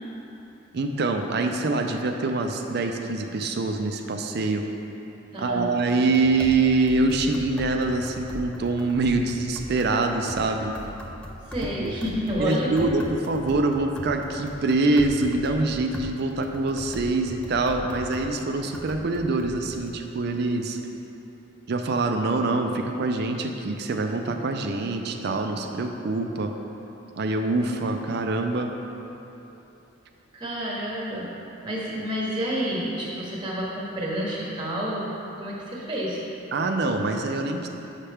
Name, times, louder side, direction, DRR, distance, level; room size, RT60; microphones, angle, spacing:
voice 1, 0.7-4.7 5.4-10.7 11.8-11.9 12.4-20.8 21.7-26.5 27.2-28.7 36.5-37.7, right 3 dB, 55° right, 4 dB, 0.4 m, -25 dB
voice 2, 5.3-5.7 11.5-12.9 30.3-31.3 31.6-35.1 35.3-36.2, equal, 25° right, -5 dB, 1.0 m, -29 dB
sound 1, 5.9-19.9, equal, 5° left, 0.3 m, -40 dB
7.4 x 5.7 x 3.4 m, 2.9 s
head